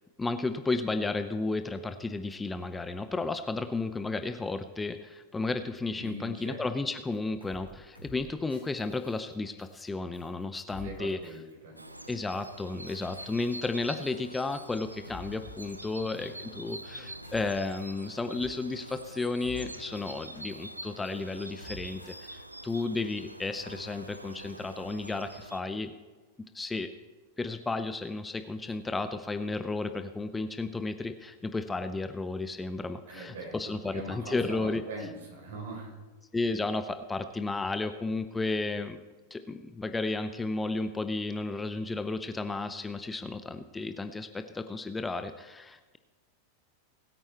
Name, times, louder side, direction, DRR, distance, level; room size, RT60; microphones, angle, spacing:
voice 1, 0.2-11.3 12.1-25.9 26.5-26.9 27.4-34.8 36.3-39.0 39.3-46.0, left 3 dB, 10° left, 9 dB, 0.7 m, -33 dB
voice 2, 6.0-6.6 10.8-11.8 33.1-36.0, right 1 dB, 60° right, 1 dB, 4.0 m, -41 dB
sound 1, 7.1-7.2 7.4-7.7 8.0-8.2 8.5-9.9 10.1-10.4 10.7-11.0 11.2-11.5 11.8-12.1 12.3-12.6 12.9-14.2 14.5-14.8 15.0-16.4 16.7-17.0 17.2-18.1 18.3-18.6 18.9-19.1 19.4-20.8 21.0-21.3 21.6-22.4 22.7-23.0, left 3 dB, 85° left, 2.9 m, -51 dB
sound 2, 11.8-25.6, right 1 dB, 85° right, 0.6 m, -45 dB
20.5 x 8.8 x 3.4 m, 1.3 s
figure-of-eight pair, 90°, 0 cm